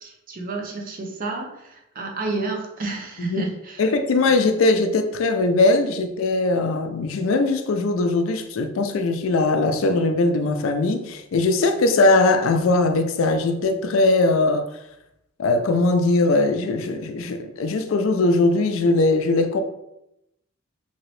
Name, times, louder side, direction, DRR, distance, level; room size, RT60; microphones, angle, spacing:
voice 1, 0.0-3.8 4.2-4.3, right 3 dB, 40° right, 0.6 m, -30 dB
voice 2, 3.8-14.7 15.4-19.6, left 2 dB, 65° left, 0.4 m, -20 dB
2.9 x 2.8 x 3.1 m
head